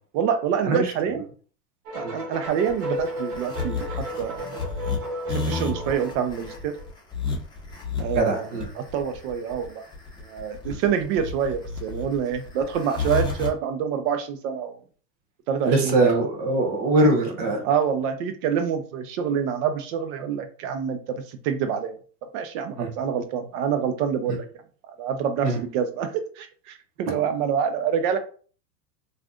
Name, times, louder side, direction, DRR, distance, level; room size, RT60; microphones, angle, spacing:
voice 1, 0.1-1.2 1.9-4.6 5.3-6.7 8.0-8.5 8.8-9.8 10.2-14.8 15.5-16.2 17.6-21.9 22.3-24.4 25.0-28.2, right 7 dB, 45° right, 8 dB, 0.7 m, -26 dB
sound 1, 1.9-6.9, equal, 65° right, 1.1 m, -34 dB
sound 2, 2.5-13.5, left 4 dB, 10° left, 0.8 m, -31 dB
voice 2, 8.1-8.7 10.7-10.8 15.6-17.6 22.8-22.9 24.3-24.4 25.4-25.6 27.1-27.2, right 2 dB, 20° right, 3 dB, 0.3 m, -22 dB
3.2 x 2.4 x 2.5 m, 0.41 s
hypercardioid pair, 105°, 49 cm